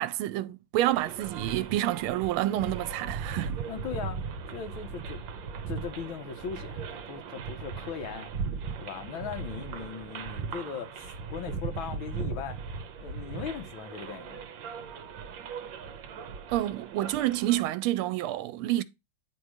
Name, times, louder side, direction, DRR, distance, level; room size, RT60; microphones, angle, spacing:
voice 1, 0.0-3.6 16.5-18.8, right 14 dB, 85° right, 1.5 m, -28 dB
sound 1, 0.9-17.7, right 5 dB, 70° right, 1.4 m, -38 dB
voice 2, 3.7-4.2 4.5-5.2 5.7-8.3 8.8-12.6 13.0-14.5, left 7 dB, 75° left, 1.7 m, -39 dB
9.3 x 3.1 x 4.7 m
omnidirectional pair, 2.3 m